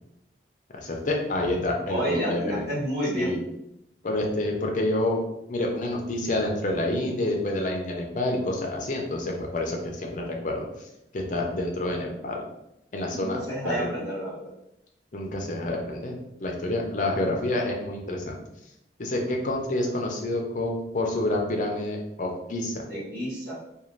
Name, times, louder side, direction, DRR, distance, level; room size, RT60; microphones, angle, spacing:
voice 1, 0.7-2.7 3.1-3.4 4.0-5.2 5.5-10.7 11.1-12.4 12.9-13.4 13.6-13.9 15.1-18.4 19.0-22.8, left 1 dB, 45° left, 1 dB, 0.5 m, -28 dB
voice 2, 1.9-3.3 13.1-14.4 22.9-23.5, equal, 60° right, -9 dB, 1.2 m, -29 dB
2.5 x 2.3 x 3.1 m, 0.83 s
head